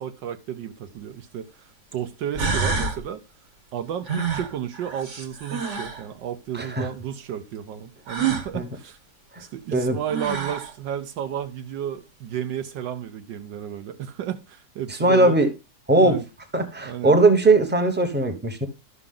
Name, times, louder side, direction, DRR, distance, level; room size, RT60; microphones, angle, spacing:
voice 1, 0.0-3.2 3.7-9.0 9.4-15.4 16.0-16.3 16.8-17.2, right 10 dB, 80° right, 1.4 m, -32 dB
sound 1, 0.9-1.0 1.9-2.0 2.4-3.0 4.1-6.0 8.1-8.5 9.7-9.8 10.1-10.7, right 5 dB, 45° right, 1.5 m, -27 dB
voice 2, 6.5-6.9 8.5-8.7 9.3-9.4 9.7-10.0 15.0-15.5 15.9-16.2 16.5-18.7, right 2 dB, 10° right, 0.8 m, -19 dB
12.5 x 6.0 x 3.7 m
omnidirectional pair, 2.0 m